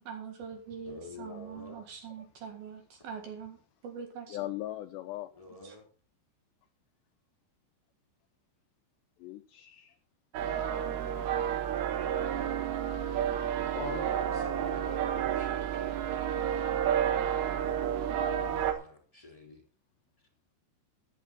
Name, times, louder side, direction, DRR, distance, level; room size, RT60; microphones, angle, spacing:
voice 1, 0.0-4.4 5.6-5.7, right 7 dB, 60° right, 4 dB, 3.1 m, -43 dB
voice 2, 0.8-1.8 5.3-5.9 14.1-16.3 17.5-19.6, left 2 dB, 10° left, 1 dB, 3.1 m, -49 dB
voice 3, 4.3-5.3 9.2-10.0 10.6-11.1 11.5-11.7 13.7-14.3, left 15 dB, 85° left, 10 dB, 2.5 m, -40 dB
sound 1, 10.3-18.7, right 9 dB, 90° right, 3.9 m, -30 dB
14.5 x 10.0 x 4.1 m, 0.38 s
omnidirectional pair, 5.6 m